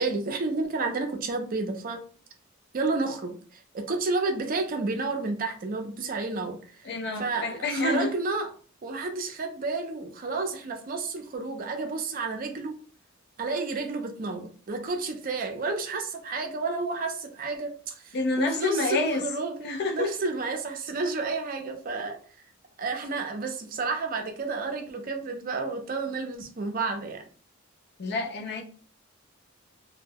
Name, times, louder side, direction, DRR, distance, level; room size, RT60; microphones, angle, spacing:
voice 1, 0.0-2.0 2.7-6.9 7.2-8.5 8.8-12.7 13.4-19.5 19.9-22.2 22.8-27.2, right 3 dB, 45° right, 0.5 m, -31 dB
voice 2, 6.8-8.1 18.1-19.2 19.6-20.3 28.0-28.6, left 3 dB, 50° left, 0.4 m, -28 dB
2.1 x 2.1 x 3.4 m
head